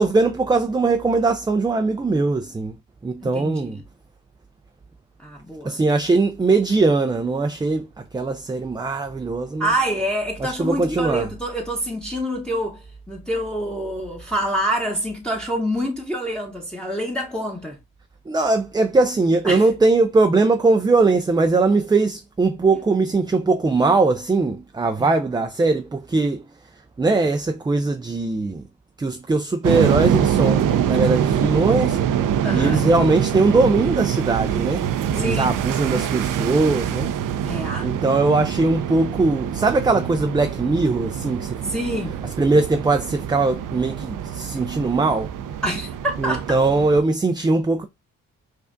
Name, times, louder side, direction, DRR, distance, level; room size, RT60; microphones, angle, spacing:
voice 1, 0.0-2.7 3.0-3.8 5.6-7.9 8.1-9.7 10.4-11.3 18.3-26.4 27.0-28.7 29.0-32.0 32.5-34.9 35.1-37.1 37.8-41.7 42.4-45.3 46.2-47.9, right 3 dB, 15° right, 0.3 m, -20 dB
voice 2, 3.2-3.8 5.2-5.8 9.6-17.8 19.4-19.7 25.0-25.1 32.4-32.9 35.2-35.6 37.4-37.9 41.6-42.2 45.6-46.6, equal, ahead, 0.9 m, -26 dB
sound 1, 29.6-47.0, right 9 dB, 65° right, 0.5 m, -24 dB
4.9 x 2.4 x 2.4 m
supercardioid pair, 50°, 34 cm